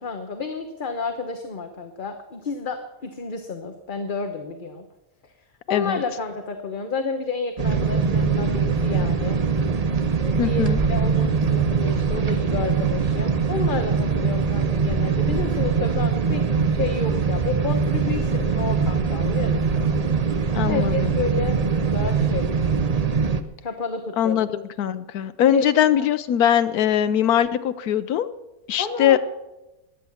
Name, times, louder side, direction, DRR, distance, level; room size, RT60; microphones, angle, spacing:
voice 1, 0.0-4.8 5.2-5.3 5.7-9.4 10.3-20.1 20.7-22.5 23.6-24.4 25.5-25.7 28.8-29.2, left 4 dB, 40° left, 6 dB, 1.1 m, -30 dB
voice 2, 5.7-6.0 10.4-10.8 20.5-21.1 24.2-28.3 28.7-29.2, left 10 dB, 90° left, 11 dB, 1.2 m, -21 dB
sound 1, 7.6-23.4, right 5 dB, 35° right, 0.7 m, -22 dB
16.0 x 11.0 x 7.1 m, 1.0 s
omnidirectional pair, 1.5 m